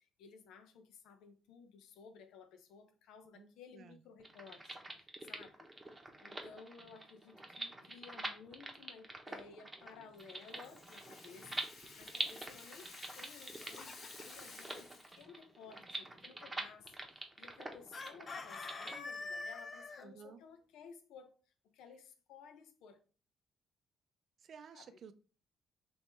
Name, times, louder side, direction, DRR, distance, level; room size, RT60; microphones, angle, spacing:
voice 1, 0.0-5.7 6.2-21.4 21.7-23.0 24.7-24.9, left 6 dB, 90° left, 0.7 m, -57 dB
voice 2, 3.3-4.0 20.0-20.4 24.4-25.1, right 6 dB, 60° right, 0.4 m, -54 dB
sound 1, 4.2-19.0, right 2 dB, 15° right, 0.9 m, -46 dB
Rattle (instrument), 10.2-15.3, left 3 dB, 65° left, 1.7 m, -54 dB
Chicken rooster, 13.3-14.5 17.9-20.1, left 3 dB, 40° left, 0.6 m, -45 dB
3.5 x 3.0 x 4.3 m
cardioid pair, 90°, 0 cm